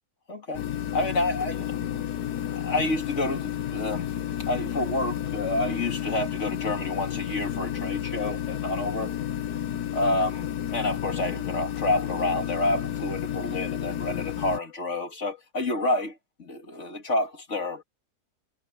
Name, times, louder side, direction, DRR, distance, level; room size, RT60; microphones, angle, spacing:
voice 1, 0.3-0.6 0.9-2.1 2.5-4.1 4.5-9.1 9.9-17.8, left 2 dB, 50° left, 2.6 m, -29 dB
sound 1, 0.5-14.6, left 10 dB, 85° left, 1.6 m, -31 dB
omnidirectional pair, 1.6 m